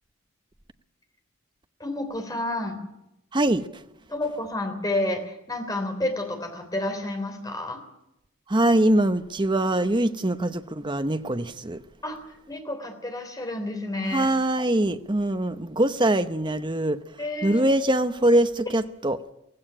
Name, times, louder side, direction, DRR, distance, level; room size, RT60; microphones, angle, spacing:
voice 1, 1.8-2.8 4.1-7.8 12.0-14.3 17.2-17.6, left 1 dB, 20° left, 3.3 m, -30 dB
voice 2, 3.3-3.7 8.5-11.8 14.1-17.0 17.4-19.2, right 1 dB, 25° right, 0.9 m, -23 dB
17.0 x 16.5 x 10.0 m
head